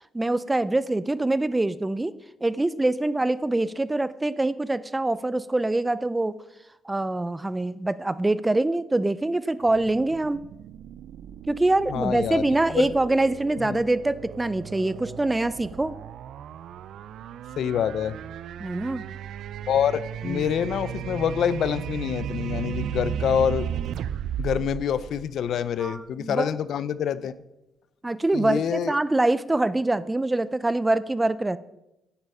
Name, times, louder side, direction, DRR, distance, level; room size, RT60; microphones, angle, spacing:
voice 1, 0.1-2.1 2.4-6.3 6.8-10.4 11.5-15.9 18.6-19.0 20.2-20.5 25.8-26.5 28.0-31.6, right 2 dB, 15° right, 17 dB, 0.4 m, -24 dB
sound 1, 9.6-25.9, right 9 dB, 75° right, 0.4 m, -35 dB
voice 2, 11.9-12.5 12.7-12.9 13.6-13.8 17.6-18.2 19.7-23.7 24.4-27.3 28.3-28.9, left 8 dB, 70° left, 16 dB, 0.5 m, -26 dB
9.6 x 8.2 x 5.5 m, 0.93 s
cardioid pair, 90°, 0 cm